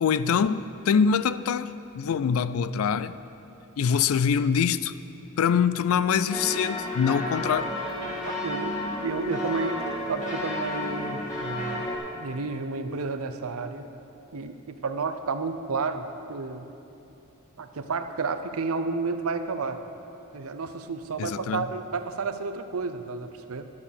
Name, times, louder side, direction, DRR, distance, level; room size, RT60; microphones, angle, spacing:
voice 1, 0.0-3.1 3.8-4.9 5.4-7.7 21.2-21.7, left 7 dB, 75° left, 0.4 m, -24 dB
sound 1, 6.3-12.0, left 1 dB, 35° left, 1.9 m, -32 dB
voice 2, 8.4-8.7 9.0-9.8 10.1-13.9 14.3-16.7 17.6-19.8 20.3-23.7, right 4 dB, 80° right, 0.7 m, -31 dB
11.5 x 7.2 x 6.7 m
head